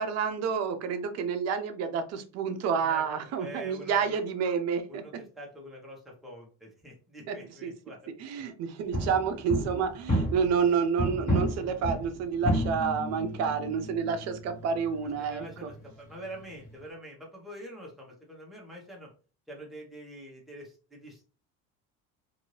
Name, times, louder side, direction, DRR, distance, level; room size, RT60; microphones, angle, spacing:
voice 1, 0.0-5.0 7.3-7.4 7.6-7.7 8.2-15.7, right 6 dB, 55° right, 8 dB, 0.6 m, -29 dB
voice 2, 2.8-4.2 4.9-8.0 15.2-19.1 19.5-21.2, right 1 dB, ahead, -3 dB, 0.9 m, -45 dB
sound 1, 8.9-10.7 11.0-16.8, equal, 25° left, 1.3 m, -32 dB
2.6 x 2.6 x 3.1 m, 0.37 s
cardioid pair, 145°, 32 cm